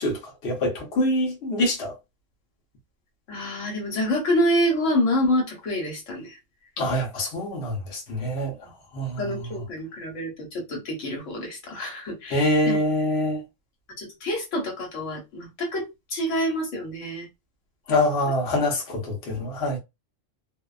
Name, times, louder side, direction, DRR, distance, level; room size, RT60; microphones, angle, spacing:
voice 1, 0.0-2.0 6.8-8.6 8.9-9.4 12.3-13.4 17.9-19.8, left 1 dB, 55° left, 1.0 m, -25 dB
voice 2, 3.3-6.4 9.2-12.8 14.0-17.3, equal, 70° left, 1.3 m, -27 dB
2.7 x 2.1 x 2.3 m
omnidirectional pair, 1.4 m